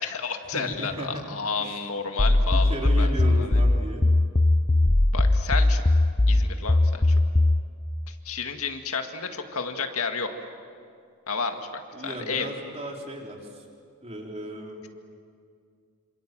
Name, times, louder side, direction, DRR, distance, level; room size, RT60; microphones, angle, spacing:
voice 1, 0.0-3.6 5.1-5.8 6.3-7.0 8.1-10.3 11.3-11.6 12.0-12.5, left 5 dB, 75° left, 5 dB, 2.0 m, -31 dB
voice 2, 0.5-1.1 1.6-1.8 2.5-4.0 11.9-13.7 14.0-14.9, equal, 30° right, 0 dB, 3.7 m, -35 dB
sound 1, 2.2-7.7, left 2 dB, 20° left, 0.6 m, -20 dB
27.5 x 27.0 x 7.6 m, 2.3 s
head